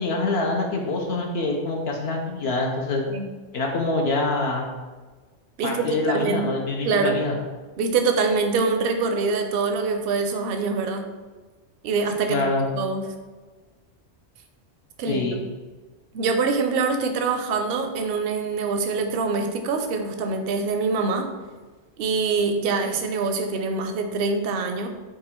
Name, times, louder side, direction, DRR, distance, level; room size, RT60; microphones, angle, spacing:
voice 1, 0.0-3.0 3.5-4.7 5.6-7.3 12.3-12.7 15.1-15.4, left 2 dB, 65° left, 1 dB, 0.8 m, -25 dB
voice 2, 5.6-6.5 6.8-7.2 7.8-11.1 11.8-12.5 12.7-13.0 15.0-15.2 16.1-21.3 22.0-24.9, right 4 dB, 60° right, 5 dB, 0.7 m, -24 dB
4.9 x 2.3 x 4.3 m, 1.3 s
omnidirectional pair, 1.2 m